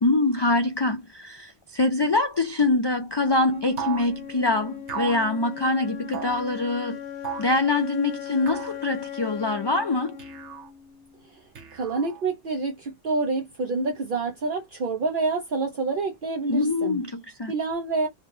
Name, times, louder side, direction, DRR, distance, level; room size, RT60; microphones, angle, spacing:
voice 1, 0.0-7.0 7.4-10.2 16.5-17.5, left 2 dB, 40° left, 0.3 m, -24 dB
Wind instrument woodwind instrument, 3.3-11.3, left 8 dB, 75° left, 1.2 m, -38 dB
sound 1, 3.8-4.1 4.9-5.2 6.1-6.4 7.2-7.6 8.5-8.8 10.2-10.7 11.5-12.2, right 9 dB, 85° right, 1.3 m, -35 dB
voice 2, 11.7-16.9 17.5-18.1, right 3 dB, 55° right, 0.8 m, -27 dB
3.3 x 2.2 x 3.1 m
omnidirectional pair, 1.1 m